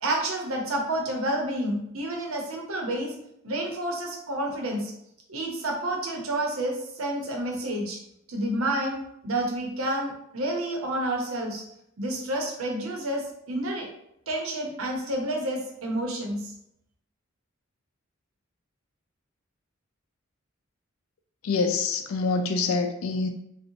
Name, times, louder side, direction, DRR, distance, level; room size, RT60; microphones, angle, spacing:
voice 1, 0.0-3.1 3.4-4.9 5.3-8.0 8.3-11.6 12.0-13.9 14.3-16.5, right 1 dB, 90° right, 1 dB, 0.7 m, -29 dB
voice 2, 21.4-23.3, left 4 dB, 80° left, 5 dB, 0.3 m, -26 dB
2.6 x 2.1 x 2.8 m, 0.77 s
head